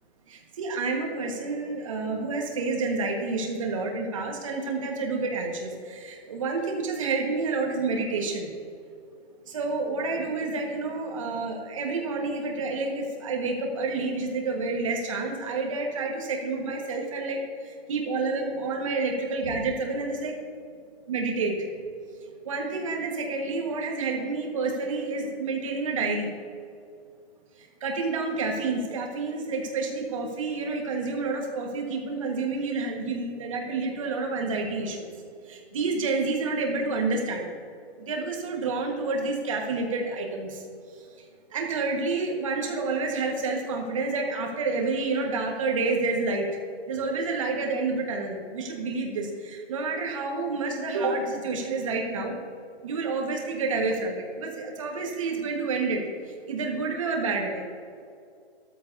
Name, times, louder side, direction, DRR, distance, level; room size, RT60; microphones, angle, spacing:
voice 1, 0.3-8.5 9.5-17.4 17.6-20.3 21.1-21.5 22.4-26.3 27.8-35.1 35.5-37.5 38.0-40.6 41.5-46.5 46.9-52.4 52.8-56.0 56.5-57.6, right 3 dB, 30° right, 1 dB, 1.5 m, -29 dB
13.0 x 13.0 x 2.7 m, 2.3 s
hypercardioid pair, 170°, 32 cm